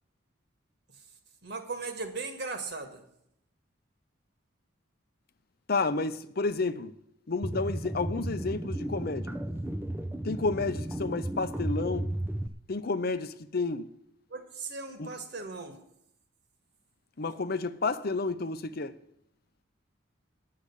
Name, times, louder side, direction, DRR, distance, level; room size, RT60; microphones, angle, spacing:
voice 1, 1.4-3.1 14.3-15.8, right 3 dB, 55° right, 1.7 m, -38 dB
voice 2, 5.7-7.0 7.3-9.3 10.2-12.1 12.7-13.9 15.0-15.1 17.2-18.9, left 3 dB, 50° left, 0.6 m, -31 dB
sound 1, 7.4-12.5, right 1 dB, 10° right, 0.5 m, -34 dB
9.9 x 7.6 x 8.4 m
head